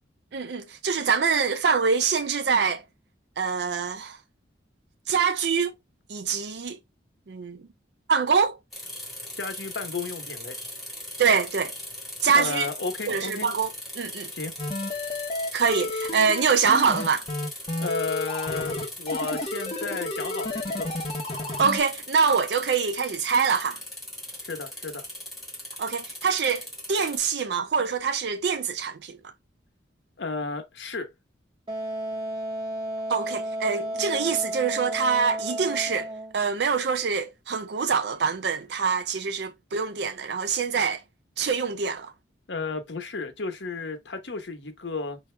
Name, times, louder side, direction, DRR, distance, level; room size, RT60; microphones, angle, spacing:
voice 1, 0.3-2.8 3.4-4.2 5.1-5.7 6.1-6.8 7.3-7.6 8.1-8.6 11.2-11.7 12.2-12.7 13.1-13.7 14.0-14.3 15.5-17.3 21.6-23.8 25.8-29.2 33.1-41.0 41.4-42.1, right 5 dB, 65° right, 0.5 m, -25 dB
sound 1, 8.7-27.2, left 1 dB, ahead, 1.6 m, -39 dB
voice 2, 9.3-10.6 12.3-13.5 14.3-14.5 17.8-20.9 24.5-25.1 30.2-31.1 42.5-45.2, left 4 dB, 75° left, 1.0 m, -33 dB
sound 2, 14.6-21.8, left 2 dB, 30° left, 0.9 m, -31 dB
Wind instrument woodwind instrument, 31.7-36.4, right 1 dB, 30° right, 1.4 m, -32 dB
5.5 x 2.8 x 3.3 m
head